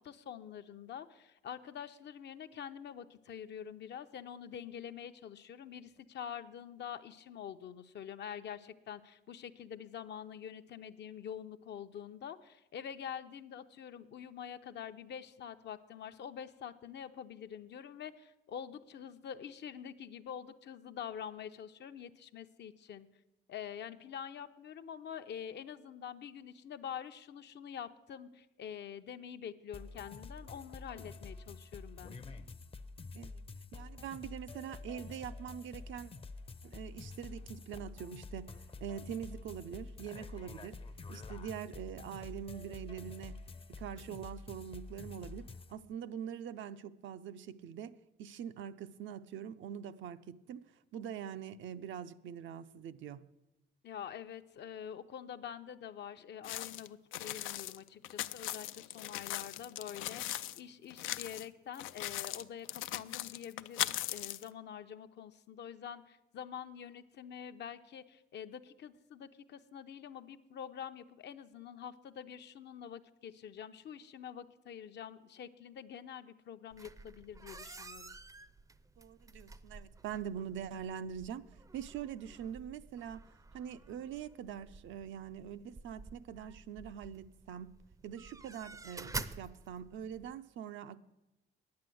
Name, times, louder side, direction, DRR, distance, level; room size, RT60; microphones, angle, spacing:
voice 1, 0.0-23.1 23.5-32.2 53.8-78.2, left 8 dB, 60° left, 0.7 m, -46 dB
sound 1, 29.7-45.7, left 3 dB, 30° left, 0.6 m, -48 dB
voice 2, 33.7-36.1 36.6-38.5 38.8-40.8 41.1-43.4 43.8-53.3 79.0-81.5 81.7-83.2 83.5-87.8 88.0-91.0, right 8 dB, 75° right, 0.5 m, -44 dB
sound 2, 56.4-60.6 60.9-61.5 61.8-64.5, left 14 dB, 90° left, 0.4 m, -39 dB
sound 3, 76.7-90.3, right 3 dB, 15° right, 0.5 m, -49 dB
9.5 x 8.6 x 7.7 m
cardioid pair, 90°, 20 cm